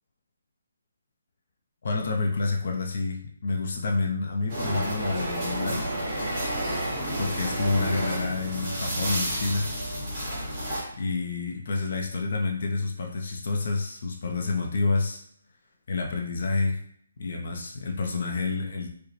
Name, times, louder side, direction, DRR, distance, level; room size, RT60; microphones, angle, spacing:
voice 1, 1.8-5.9 7.2-9.7 11.0-15.2 15.9-16.8 17.2-18.9, left 3 dB, 45° left, 1 dB, 0.5 m, -28 dB
sound 1, 4.5-10.8, right 1 dB, 15° right, 1.2 m, -30 dB
4.8 x 2.1 x 3.1 m, 0.63 s
hypercardioid pair, 175°, 0 cm